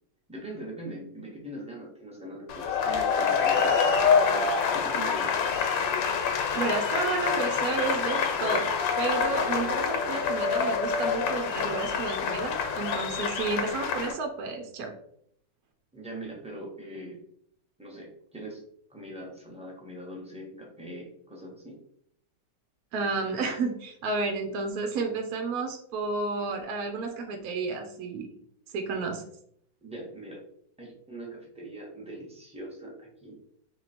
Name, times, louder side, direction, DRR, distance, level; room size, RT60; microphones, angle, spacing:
voice 1, 0.3-5.3 15.9-17.2 17.8-18.6 18.9-21.8 29.8-30.4 30.8-33.4, right 1 dB, 5° right, -4 dB, 0.5 m, -41 dB
sound 1, 2.5-14.1, left 6 dB, 85° left, 1.4 m, -26 dB
voice 2, 6.5-14.9 22.9-28.3 28.7-29.2, right 4 dB, 70° right, 3 dB, 0.9 m, -31 dB
3.0 x 3.0 x 4.1 m, 0.70 s
omnidirectional pair, 2.0 m